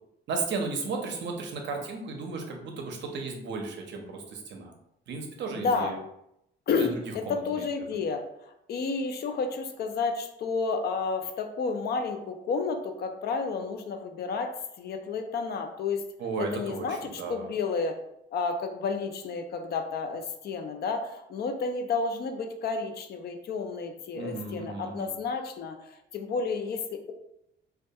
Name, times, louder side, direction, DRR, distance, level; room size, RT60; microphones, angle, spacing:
voice 1, 0.3-4.7 5.1-5.9 6.8-6.9 7.3-7.6 16.2-17.5 24.2-25.1, right 4 dB, 65° right, 2 dB, 0.5 m, -34 dB
voice 2, 5.5-5.9 6.7-14.5 14.8-16.0 16.4-18.0 18.3-27.1, left 4 dB, 55° left, 6 dB, 0.4 m, -31 dB
2.2 x 2.2 x 2.7 m, 0.81 s
cardioid pair, 90°, 20 cm